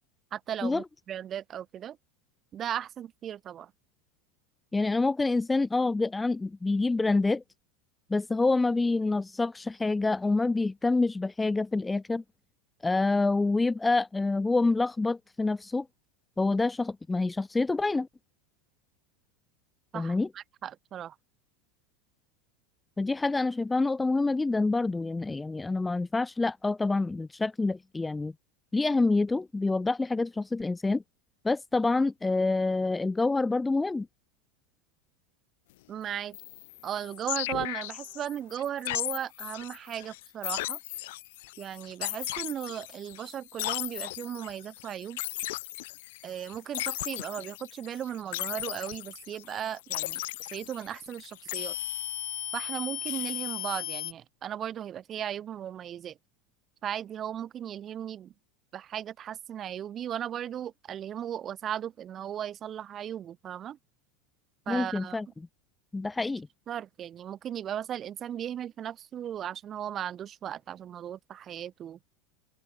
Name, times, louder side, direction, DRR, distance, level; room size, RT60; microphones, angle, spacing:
voice 1, 0.3-2.0 2.5-3.7 19.9-21.2 35.9-36.4 36.8-40.8 41.6-45.2 46.2-50.2 50.5-51.8 52.5-56.2 56.8-58.3 58.7-63.8 64.7-65.2 66.7-72.0, right 10 dB, 30° right, 4.2 m, -36 dB
voice 2, 4.7-7.4 8.1-12.2 12.8-15.9 16.4-18.1 19.9-20.3 23.0-28.3 28.7-31.0 31.4-34.1 64.7-65.3 65.9-66.5, left 3 dB, 10° left, 2.2 m, -27 dB
sound 1, 36.3-54.1, left 19 dB, 75° left, 6.7 m, -36 dB
supercardioid pair, 130°, 0 cm